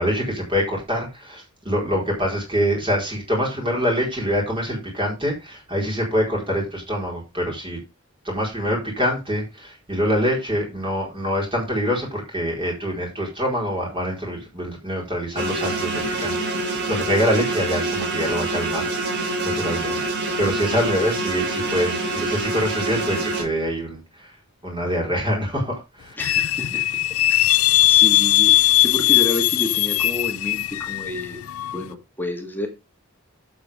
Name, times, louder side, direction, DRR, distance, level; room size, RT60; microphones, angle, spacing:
voice 1, 0.0-7.8 8.2-18.9 19.4-20.0 20.4-24.3 24.6-26.2, equal, 25° right, 4.6 m, -25 dB
sound 1, 15.4-23.4, right 2 dB, 55° right, 3.4 m, -26 dB
sound 2, 26.2-31.8, left 17 dB, 75° left, 0.4 m, -19 dB
voice 2, 26.2-26.8 27.3-31.4 31.7-32.7, left 2 dB, 10° left, 1.9 m, -30 dB
12.0 x 7.1 x 3.6 m
head